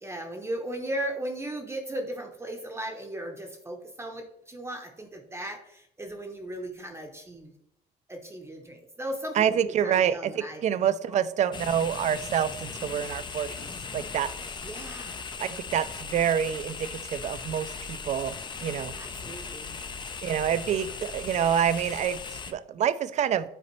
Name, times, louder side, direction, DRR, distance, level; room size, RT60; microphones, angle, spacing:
voice 1, 0.0-7.5 8.1-10.8 11.1-11.2 14.2-15.2 19.0-19.7, right 1 dB, 15° right, 2 dB, 0.8 m, -37 dB
voice 2, 9.4-13.7 13.9-14.3 15.4-18.4 18.6-19.0 20.2-23.5, right 9 dB, 45° right, 14 dB, 0.4 m, -27 dB
sound 1, 11.5-22.5, left 5 dB, 25° left, 0.5 m, -38 dB
7.9 x 4.1 x 3.1 m, 0.78 s
cardioid pair, 110°, 17 cm